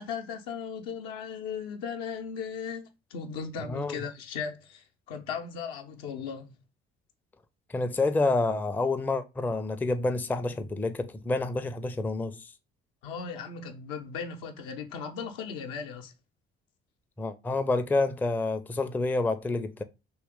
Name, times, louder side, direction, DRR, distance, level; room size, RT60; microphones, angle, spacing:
voice 1, 0.0-6.5 13.0-16.1, left 6 dB, 75° left, 0.7 m, -37 dB
voice 2, 3.7-4.0 7.7-12.5 17.2-19.8, left 3 dB, 5° left, 0.4 m, -28 dB
3.1 x 2.9 x 3.5 m
figure-of-eight pair, 50°, 31 cm